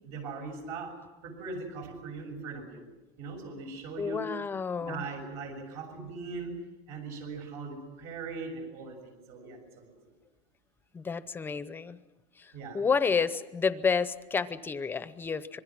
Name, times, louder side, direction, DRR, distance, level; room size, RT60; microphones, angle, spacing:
voice 1, 0.0-2.9 3.2-4.3 4.8-6.5 6.9-10.1 12.5-12.9, right 4 dB, 70° right, 3 dB, 6.7 m, -40 dB
voice 2, 4.0-5.1 10.9-12.0 12.4-15.6, left 5 dB, 15° left, 14 dB, 0.7 m, -30 dB
26.0 x 22.0 x 6.1 m, 1.1 s
cardioid pair, 165°, 14 cm